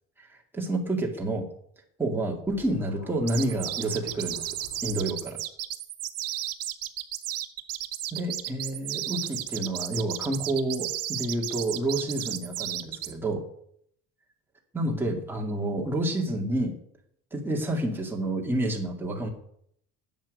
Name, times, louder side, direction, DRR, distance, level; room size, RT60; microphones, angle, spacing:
voice 1, 0.3-1.5 2.0-5.4 8.1-13.4 14.7-16.7 17.3-19.3, right 1 dB, 5° right, 0 dB, 2.3 m, -29 dB
Scratching (performance technique), 2.5-5.0, left 1 dB, 60° left, 6.3 m, -49 dB
sound 1, 3.3-13.1, right 13 dB, 45° right, 1.0 m, -33 dB
10.5 x 7.4 x 9.6 m, 0.68 s
cardioid pair, 160°, 34 cm